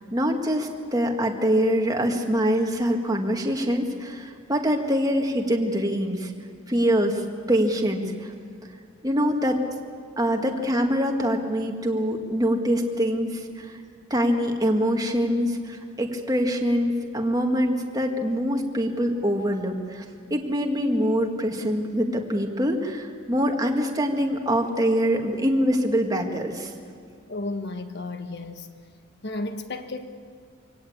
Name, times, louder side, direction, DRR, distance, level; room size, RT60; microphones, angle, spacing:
voice 1, 0.1-6.3 6.7-7.2 7.5-8.3 9.0-9.6 10.2-13.7 14.1-20.0 20.3-26.7, equal, 20° right, 3 dB, 1.9 m, -24 dB
voice 2, 27.3-28.7 29.2-30.1, left 2 dB, 55° left, 8 dB, 1.4 m, -33 dB
24.5 x 17.5 x 8.7 m, 2.2 s
head